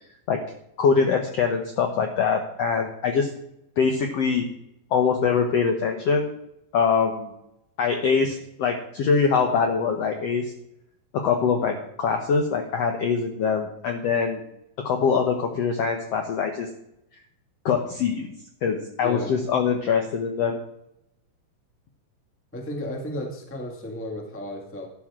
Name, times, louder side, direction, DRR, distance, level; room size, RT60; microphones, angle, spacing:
voice 1, 0.8-3.3 3.8-4.5 4.9-6.3 6.7-7.3 7.8-10.5 11.1-14.4 14.8-16.7 17.6-18.3 18.6-20.6, left 5 dB, 90° left, 4 dB, 1.4 m, -23 dB
voice 2, 19.0-19.3 22.5-24.9, left 1 dB, 10° left, 1 dB, 0.7 m, -33 dB
12.5 x 12.0 x 3.7 m, 0.80 s
omnidirectional pair, 4.4 m